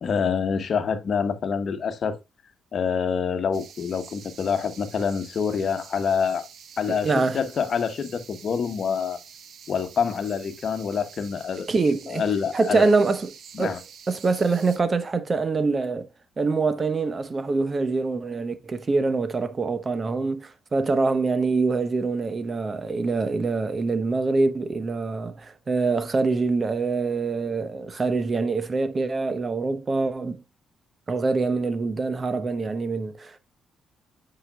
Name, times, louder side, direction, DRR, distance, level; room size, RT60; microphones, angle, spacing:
voice 1, 0.0-2.2 2.7-6.5 6.8-9.2 9.7-11.7 12.1-12.9 13.5-13.8, left 6 dB, 55° left, 1.1 m, -26 dB
sound 1, 3.5-14.8, right 7 dB, 65° right, 0.9 m, -47 dB
voice 2, 6.9-7.4 11.7-12.2 12.5-13.3 13.6-13.8 14.1-16.1 16.4-30.4 31.1-33.4, right 3 dB, 35° right, 0.9 m, -24 dB
8.9 x 5.0 x 2.3 m
cardioid pair, 90°, 0 cm